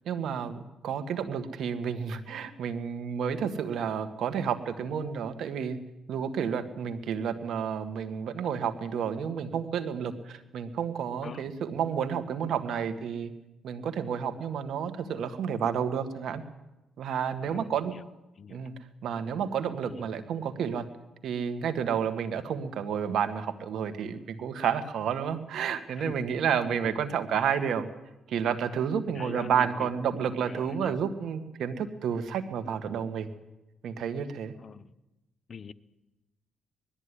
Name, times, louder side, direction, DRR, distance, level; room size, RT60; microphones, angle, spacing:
voice 1, 0.1-5.8 6.1-13.3 13.6-16.4 17.0-17.9 18.5-18.8 19.0-20.8 21.2-27.9 28.3-33.3 33.8-34.5, right 7 dB, 70° right, 9 dB, 1.9 m, -30 dB
voice 2, 17.4-18.0 18.4-18.7 19.9-20.1 26.0-26.1 26.8-27.0 29.1-31.1 34.6-34.9 35.5-35.7, left 6 dB, 45° left, 14 dB, 0.9 m, -44 dB
20.5 x 13.0 x 10.0 m, 0.99 s
cardioid pair, 90°, 0 cm